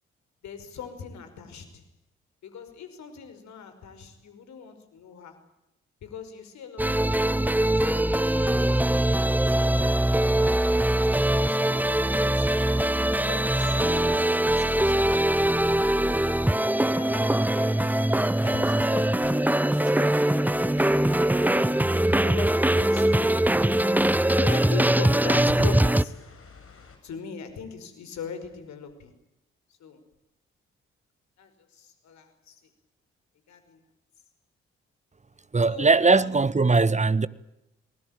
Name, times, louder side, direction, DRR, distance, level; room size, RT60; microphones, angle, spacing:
voice 1, 0.4-1.8 2.4-5.4 6.0-8.1 8.4-10.0 10.4-12.8 13.2-16.4 17.0-18.0 18.4-21.0 21.3-23.7 24.3-26.2 27.0-29.1 29.8-30.0 31.4-32.6 33.5-33.8 35.7-36.4, left 6 dB, 65° left, 5.4 m, -41 dB
sound 1, 6.8-26.0, right 1 dB, 5° right, 1.0 m, -22 dB
sound 2, 9.7-27.0, left 4 dB, 45° left, 7.8 m, -51 dB
voice 2, 35.5-37.3, right 3 dB, 25° right, 1.6 m, -20 dB
30.0 x 20.5 x 9.0 m
hypercardioid pair, 40°, 30 cm